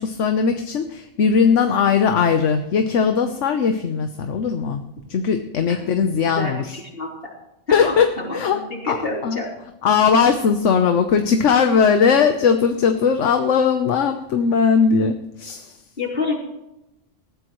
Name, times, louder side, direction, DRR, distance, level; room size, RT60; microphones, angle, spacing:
voice 1, 0.0-4.8 5.1-6.8 7.7-8.1 8.3-8.6 8.9-9.0 9.2-9.4 9.8-15.8, left 6 dB, 75° left, 6 dB, 1.2 m, -19 dB
voice 2, 6.4-7.1 7.7-9.5 16.0-16.4, left 3 dB, 50° left, -2 dB, 3.8 m, -28 dB
20.0 x 14.5 x 3.1 m, 0.90 s
omnidirectional pair, 1.3 m